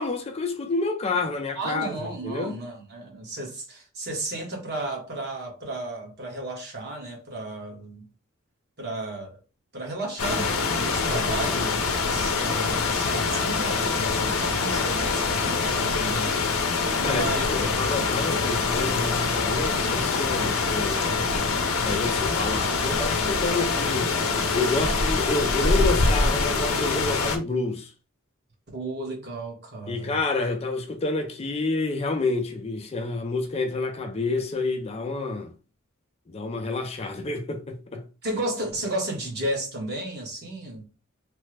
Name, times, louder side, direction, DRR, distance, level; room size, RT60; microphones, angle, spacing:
voice 1, 0.0-2.5 11.4-11.7 17.0-21.1 21.8-24.1 24.5-27.9 29.9-35.5 36.3-38.0, left 3 dB, 30° left, 0.4 m, -29 dB
voice 2, 1.5-8.1 8.8-9.4 9.7-16.4 17.0-17.5 28.7-30.1 38.2-40.8, right 2 dB, 50° right, 1.1 m, -33 dB
sound 1, 10.2-27.4, left 4 dB, 70° left, 0.6 m, -24 dB
3.2 x 2.0 x 3.2 m
head